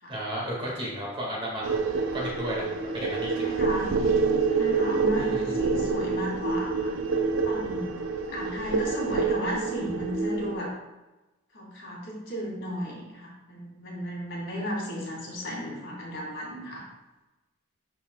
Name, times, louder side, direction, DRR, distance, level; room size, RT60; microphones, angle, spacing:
voice 1, 0.1-3.5 5.2-5.6, equal, 25° right, -4 dB, 1.7 m, -34 dB
sound 1, 1.6-10.6, right 4 dB, 65° right, 0.5 m, -27 dB
voice 2, 3.3-3.9 4.5-6.9 7.4-8.0 8.3-10.7 11.5-16.9, equal, 60° left, -3 dB, 1.9 m, -34 dB
11.0 x 4.0 x 2.2 m, 1.1 s
head